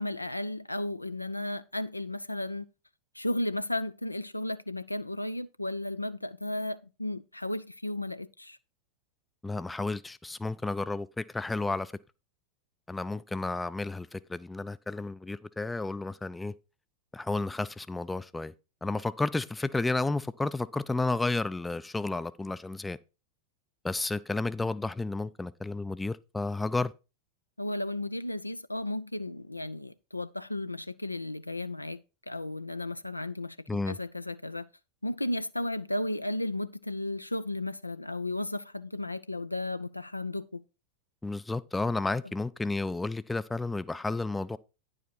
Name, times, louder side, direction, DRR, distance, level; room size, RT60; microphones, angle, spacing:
voice 1, 0.0-2.7 3.1-8.6 27.6-32.0 32.3-34.7 35.0-40.6, left 1 dB, 85° left, 0.4 m, -34 dB
voice 2, 9.4-11.9 12.9-16.5 17.1-18.5 18.8-23.0 23.8-26.9 33.7-34.0 41.2-44.6, left 3 dB, 10° left, 0.4 m, -32 dB
9.9 x 4.9 x 4.4 m
figure-of-eight pair, 90°, 0 cm